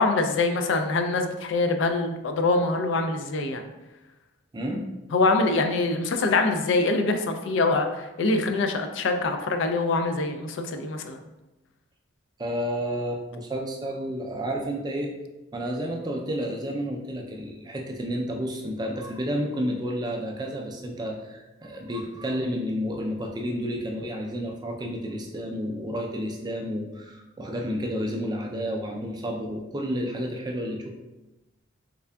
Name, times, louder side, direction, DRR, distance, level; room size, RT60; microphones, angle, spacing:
voice 1, 0.0-3.6 5.1-11.2, left 3 dB, 60° left, 6 dB, 0.3 m, -24 dB
voice 2, 4.5-4.8 12.4-15.1 15.5-30.9, equal, 20° right, 1 dB, 0.3 m, -31 dB
3.6 x 3.3 x 2.2 m, 1.0 s
head